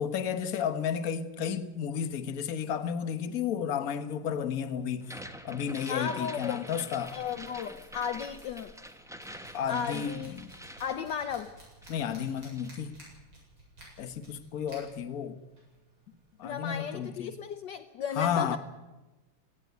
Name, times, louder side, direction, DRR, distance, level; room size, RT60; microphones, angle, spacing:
voice 1, 0.0-5.2 5.4-7.2 9.5-10.5 11.9-13.0 14.0-15.4 16.4-17.4 18.2-18.6, left 8 dB, 50° left, 1.4 m, -32 dB
mechanical pencil, 4.5-17.1, right 1 dB, 85° right, 8.8 m, -56 dB
sound 1, 5.0-11.6 11.8-12.8, equal, ahead, 0.9 m, -46 dB
voice 2, 5.9-6.7 7.1-8.7 9.7-10.4 10.8-11.5 16.4-18.6, left 7 dB, 65° left, 1.4 m, -35 dB
17.5 x 16.5 x 9.3 m
omnidirectional pair, 2.2 m